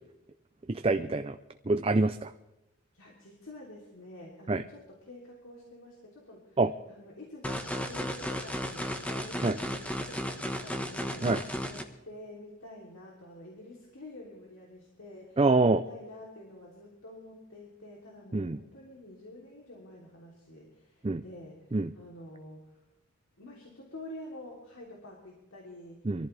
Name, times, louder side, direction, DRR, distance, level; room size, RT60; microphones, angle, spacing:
voice 1, 0.7-1.4 1.7-2.3 4.5-4.6 6.6-6.7 9.4-9.5 11.2-11.4 15.4-15.8 18.3-18.6 21.0-21.2 21.7-21.9 26.1-26.3, right 3 dB, 30° right, 9 dB, 0.5 m, -25 dB
voice 2, 2.9-6.6 6.9-11.3 11.6-22.8 23.4-26.1, left 1 dB, 85° left, -3 dB, 3.3 m, -48 dB
sound 1, 7.4-11.8, equal, 5° left, 1.3 m, -34 dB
24.0 x 14.5 x 3.4 m, 0.95 s
head